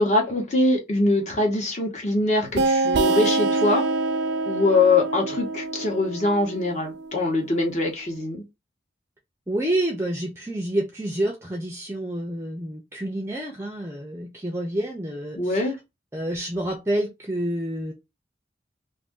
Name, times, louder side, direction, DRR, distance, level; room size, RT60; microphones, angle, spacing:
voice 1, 0.0-3.8 4.5-8.4 15.4-15.7, left 2 dB, 40° left, 1.0 m, -23 dB
sound 1, 2.5-7.9, right 3 dB, 65° right, 0.5 m, -26 dB
voice 2, 9.5-15.7 16.1-17.9, right 1 dB, 15° right, 0.5 m, -28 dB
2.6 x 2.6 x 3.6 m
head